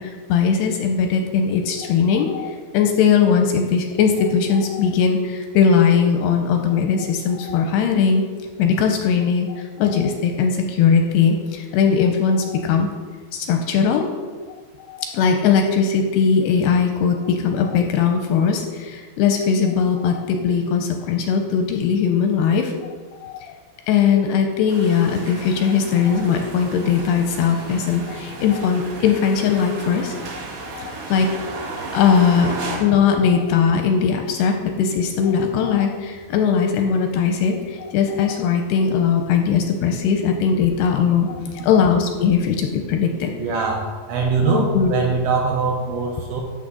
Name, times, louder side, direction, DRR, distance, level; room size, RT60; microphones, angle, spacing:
voice 1, 0.0-8.2 8.6-12.9 13.3-14.1 14.9-22.7 23.2-23.5 23.9-30.2 30.7-31.3 31.9-43.3 44.4-45.0, left 6 dB, 85° left, 4 dB, 2.4 m, -19 dB
sound 1, 24.7-32.8, right 3 dB, 55° right, 2.7 m, -34 dB
voice 2, 43.4-46.4, right 4 dB, 75° right, 0 dB, 2.4 m, -22 dB
12.5 x 6.7 x 3.8 m, 1.5 s
omnidirectional pair, 5.1 m